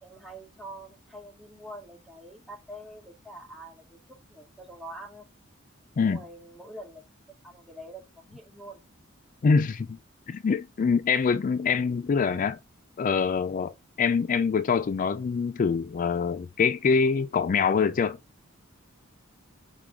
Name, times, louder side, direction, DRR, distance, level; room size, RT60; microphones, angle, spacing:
voice 1, 0.0-4.0 4.3-5.3 6.0-7.0 7.4-8.8, right 1 dB, ahead, 2.0 m, -45 dB
voice 2, 9.4-10.0 10.3-12.6 13.0-18.2, left 5 dB, 40° left, 0.3 m, -25 dB
10.5 x 3.8 x 3.6 m
head